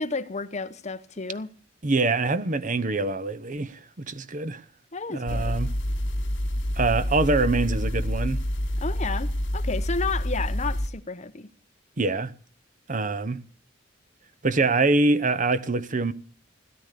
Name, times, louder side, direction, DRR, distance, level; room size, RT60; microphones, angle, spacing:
voice 1, 0.0-1.5 4.9-5.5 8.8-11.5, left 4 dB, 40° left, 0.9 m, -32 dB
voice 2, 1.8-4.6 5.1-5.7 6.8-8.4 12.0-12.3 12.9-13.4 14.4-16.1, right 3 dB, 45° right, 0.9 m, -24 dB
sound 1, 5.3-10.9, equal, 70° left, 3.2 m, -27 dB
17.0 x 12.5 x 6.7 m
head